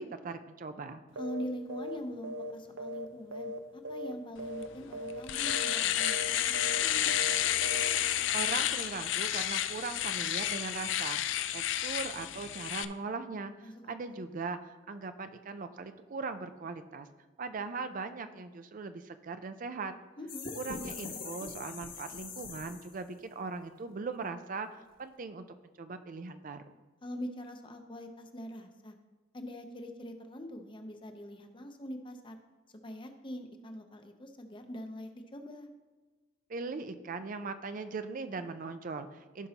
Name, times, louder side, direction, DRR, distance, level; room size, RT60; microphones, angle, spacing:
voice 1, 0.0-1.0 8.3-17.1 17.4-19.9 20.5-25.4 25.8-26.6 36.5-39.5, right 4 dB, 45° right, 9 dB, 0.4 m, -39 dB
voice 2, 1.2-7.1 13.6-14.2 20.2-20.5 27.0-29.0 29.3-32.4 32.8-35.7, equal, 25° left, 5 dB, 0.7 m, -43 dB
sound 1, 1.2-1.4 1.7-2.0 2.2-3.6 3.9-4.1 4.4-4.7 4.9-5.2 5.5-5.7 6.0-6.3 6.5-6.8 7.1-7.4 7.6-7.9, equal, 85° right, 0.7 m, -39 dB
Domestic sounds home sounds, 4.6-4.7 5.1-12.9, left 11 dB, 70° left, 0.4 m, -31 dB
sound 2, 20.3-23.1, left 4 dB, 50° left, 1.3 m, -42 dB
15.5 x 5.4 x 2.9 m, 1.2 s
head